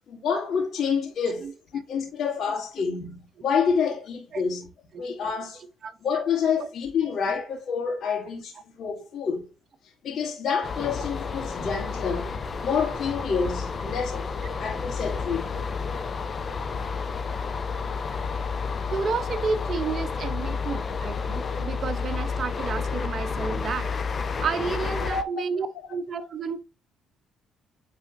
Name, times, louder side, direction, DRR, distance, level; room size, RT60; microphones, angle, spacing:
voice 1, 0.0-1.5 1.9-4.7 5.0-5.6 6.0-9.4 10.0-12.4 12.6-14.2 14.6-15.5 20.7-20.8 25.1-25.2 26.2-26.3, left 6 dB, 65° left, 2.6 m, -28 dB
sound 1, 10.6-25.2, left 5 dB, 40° left, 0.9 m, -30 dB
voice 2, 18.9-23.9 24.4-26.6, right 5 dB, 50° right, 1.0 m, -31 dB
9.2 x 4.1 x 2.8 m
cardioid pair, 85°, 0 cm